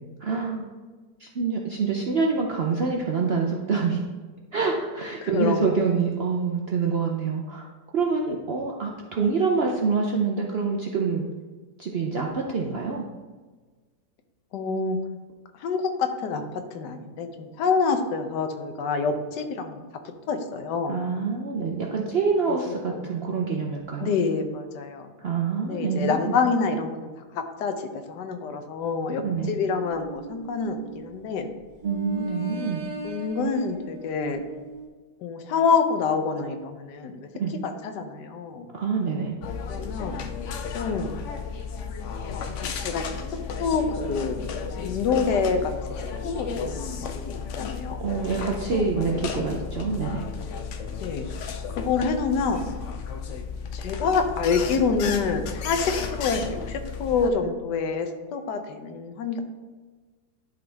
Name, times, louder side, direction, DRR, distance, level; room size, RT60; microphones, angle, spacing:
voice 1, 0.2-0.7 1.2-4.0 4.5-7.7 7.9-11.3 11.8-13.0 20.9-24.1 25.2-26.4 29.2-29.5 31.8-32.8 37.3-37.5 38.7-39.4 48.0-50.3, right 5 dB, 65° right, 0 dB, 0.6 m, -26 dB
voice 2, 5.2-5.9 14.5-15.0 15.6-19.8 20.3-21.0 22.5-23.1 24.0-25.1 25.6-31.5 33.0-34.4 35.2-37.3 37.6-38.7 39.7-40.3 40.7-41.1 42.2-43.2 43.6-44.4 44.8-48.0 48.7-48.9 49.3-49.4 51.0-51.3 51.7-52.6 53.7-59.4, left 5 dB, 90° left, 6 dB, 1.4 m, -27 dB
sound 1, 29.7-31.3 31.8-34.9, right 1 dB, 85° right, 1.6 m, -39 dB
sound 2, 39.4-57.3, left 6 dB, 65° left, 0.7 m, -33 dB
11.5 x 3.8 x 3.4 m, 1.4 s
omnidirectional pair, 1.8 m